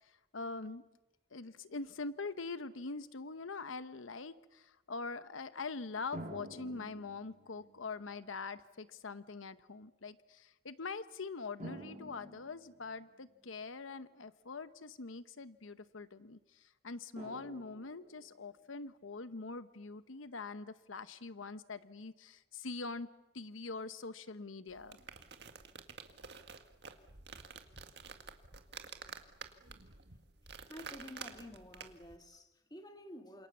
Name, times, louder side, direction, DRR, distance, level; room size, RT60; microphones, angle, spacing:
voice 1, 0.0-0.9 1.3-23.1 23.3-25.0, left 4 dB, 80° left, 0.9 m, -44 dB
sound 1, 6.1-7.9 8.8-8.9 11.6-13.3 17.2-18.5, right 1 dB, 35° right, 4.3 m, -50 dB
sound 2, 24.7-32.2, right 5 dB, 55° right, 1.9 m, -50 dB
voice 2, 30.7-33.5, left 1 dB, 20° left, 2.0 m, -51 dB
28.5 x 27.5 x 7.2 m
head